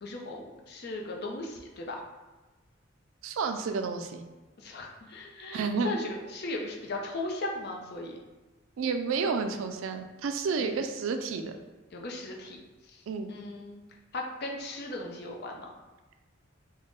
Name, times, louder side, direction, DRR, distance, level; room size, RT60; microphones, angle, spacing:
voice 1, 0.0-2.0 4.6-8.2 10.6-10.8 11.9-12.6 12.9-13.0 13.3-13.8 14.1-15.7, left 2 dB, 55° left, 0 dB, 0.5 m, -37 dB
voice 2, 3.2-4.3 5.5-6.0 8.8-11.5 13.1-13.3, right 5 dB, 80° right, 7 dB, 0.3 m, -30 dB
3.5 x 2.1 x 3.8 m, 1.2 s
head